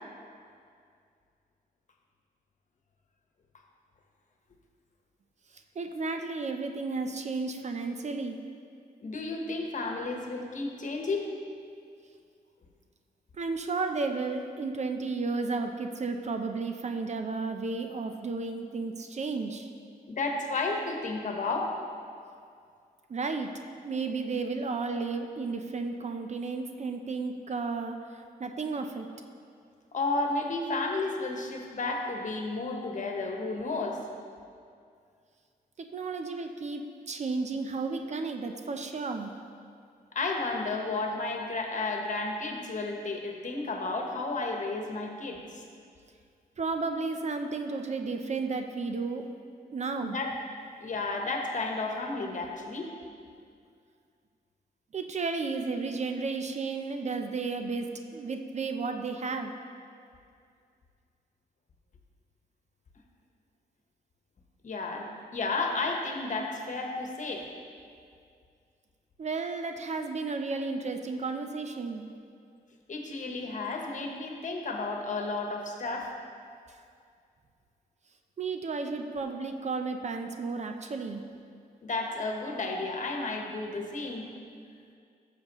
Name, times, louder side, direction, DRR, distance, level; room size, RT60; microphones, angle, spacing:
voice 1, 5.7-8.4 13.4-19.7 23.1-23.5 23.8-29.1 35.8-39.3 46.6-49.2 49.7-50.2 54.9-59.5 69.2-72.0 78.4-81.2, right 4 dB, 45° right, 5 dB, 0.7 m, -33 dB
voice 2, 9.0-11.3 20.1-21.8 29.9-34.0 40.1-45.6 50.0-50.3 50.8-52.9 64.6-67.5 72.9-76.1 81.8-84.3, left 3 dB, 50° left, 2 dB, 1.2 m, -32 dB
13.5 x 6.9 x 3.1 m, 2.3 s
cardioid pair, 80°, 16 cm